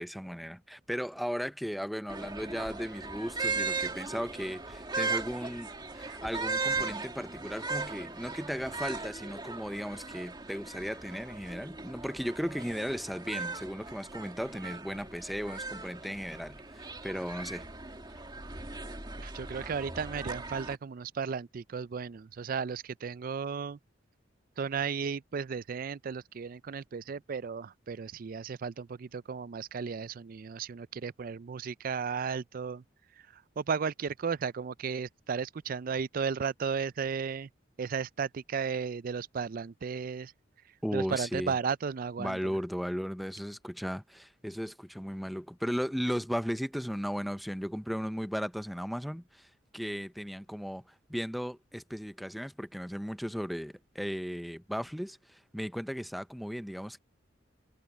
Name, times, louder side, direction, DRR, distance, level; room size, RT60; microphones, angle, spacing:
voice 1, 0.0-17.6 40.8-41.6 42.2-57.0, equal, ahead, 0.6 m, -36 dB
sound 1, 2.1-20.8, right 4 dB, 25° right, 2.4 m, -38 dB
voice 2, 19.2-23.8 24.6-32.8 33.3-37.5 37.8-40.3 40.9-42.6, right 6 dB, 50° right, 0.4 m, -34 dB
head